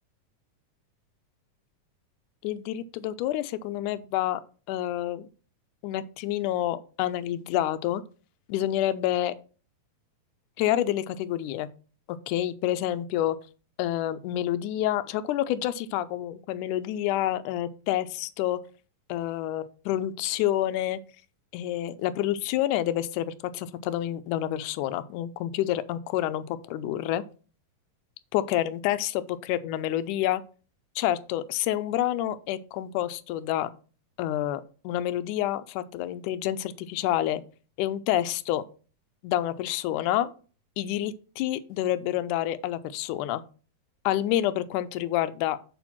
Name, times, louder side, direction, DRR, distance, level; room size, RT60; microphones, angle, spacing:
voice 1, 2.4-4.4 4.7-5.3 5.8-8.0 8.5-9.4 10.6-11.7 12.1-13.4 13.8-18.6 19.1-21.0 21.5-27.2 28.3-29.1 29.5-30.4 31.0-33.7 34.2-37.4 37.8-38.6 39.2-40.3 40.8-43.4 44.1-45.6, left 13 dB, 80° left, 13 dB, 1.8 m, -28 dB
7.0 x 4.3 x 5.8 m, 0.38 s
omnidirectional pair, 4.0 m